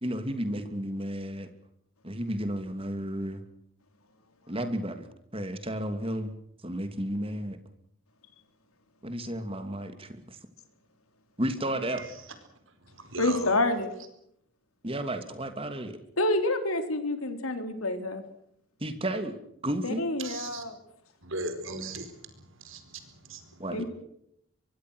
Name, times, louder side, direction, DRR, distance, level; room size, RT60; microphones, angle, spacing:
voice 1, 0.0-1.5 2.0-3.4 4.5-5.0 5.3-6.3 6.6-7.6 9.0-10.4 11.4-12.0 14.8-16.0 18.8-19.4 19.6-20.0 23.6-23.8, right 1 dB, 25° right, 8 dB, 2.8 m, -32 dB
voice 2, 11.9-12.3 12.7-13.6 20.2-20.6 21.2-23.7, right 2 dB, 65° right, 9 dB, 4.5 m, -39 dB
voice 3, 13.2-13.9 16.2-18.2 19.8-20.7 23.7-23.8, left 2 dB, 85° left, 7 dB, 3.8 m, -28 dB
24.0 x 23.5 x 6.4 m, 0.73 s
head